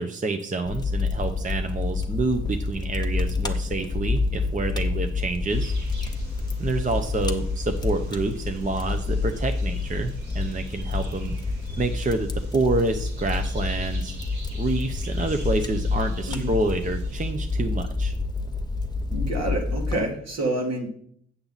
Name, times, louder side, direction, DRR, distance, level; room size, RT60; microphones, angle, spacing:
voice 1, 0.0-5.8 6.6-11.3 11.8-14.1 14.5-18.1, right 2 dB, 25° right, 7 dB, 0.7 m, -28 dB
Fire, 0.7-19.9, left 3 dB, 15° left, 0.8 m, -28 dB
sound 1, 5.5-17.3, right 1 dB, 90° right, 3.4 m, -46 dB
voice 2, 19.1-20.9, right 1 dB, 65° right, 1 dB, 2.1 m, -28 dB
8.6 x 7.1 x 4.0 m, 0.64 s
wide cardioid pair, 110°, 29 cm